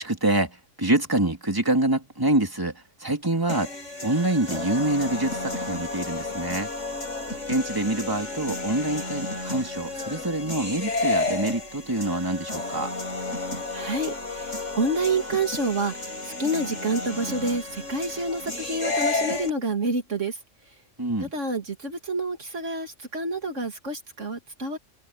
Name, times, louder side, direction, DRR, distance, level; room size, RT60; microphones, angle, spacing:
voice 1, 0.0-3.7 4.0-6.7 7.5-12.9 21.0-21.3, right 1 dB, 15° right, 3.1 m, -26 dB
sound 1, 3.5-19.5, left 3 dB, 70° left, 6.9 m, -32 dB
voice 2, 13.7-20.4 21.3-24.8, right 2 dB, 75° right, 3.1 m, -28 dB
omnidirectional pair, 1.3 m